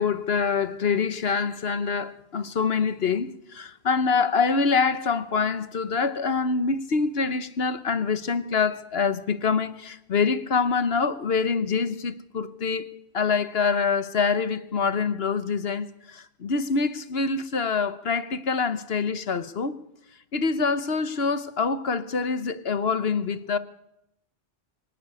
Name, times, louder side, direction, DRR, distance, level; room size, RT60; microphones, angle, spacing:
voice 1, 0.0-12.9 13.1-19.8 20.3-23.6, left 5 dB, 60° left, 1.2 m, -25 dB
24.5 x 12.0 x 9.6 m
omnidirectional pair, 1.2 m